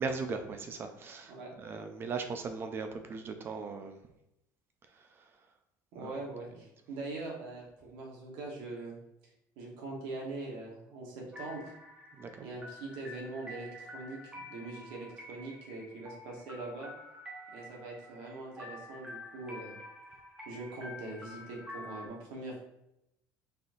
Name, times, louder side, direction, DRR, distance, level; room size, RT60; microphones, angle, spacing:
voice 1, 0.0-1.3 1.6-4.0 6.0-6.1 12.2-12.5, right 4 dB, 30° right, 7 dB, 0.4 m, -38 dB
voice 2, 5.9-9.0 9.6-11.7 12.4-16.9 17.5-19.8 20.5-22.6, right 2 dB, 75° right, -1 dB, 1.3 m, -42 dB
sound 1, 11.3-22.1, left 1 dB, 15° right, 1.0 m, -48 dB
4.2 x 3.7 x 2.6 m, 0.83 s
cardioid pair, 140°, 7 cm